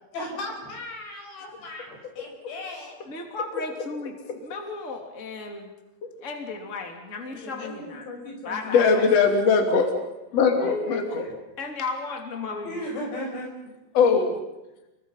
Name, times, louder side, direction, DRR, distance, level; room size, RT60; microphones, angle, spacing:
voice 1, 0.1-3.0 7.2-9.1 10.6-11.4 12.6-13.5, left 1 dB, 90° left, 1 dB, 7.9 m, -36 dB
voice 2, 3.1-5.7 6.2-8.0 8.4-9.1 11.6-12.7, left 3 dB, 20° left, 3 dB, 2.8 m, -35 dB
voice 3, 8.7-9.9 10.3-11.2 13.9-14.3, left 5 dB, 40° left, 3 dB, 3.6 m, -20 dB
30.0 x 23.0 x 5.8 m, 0.99 s
omnidirectional pair, 4.8 m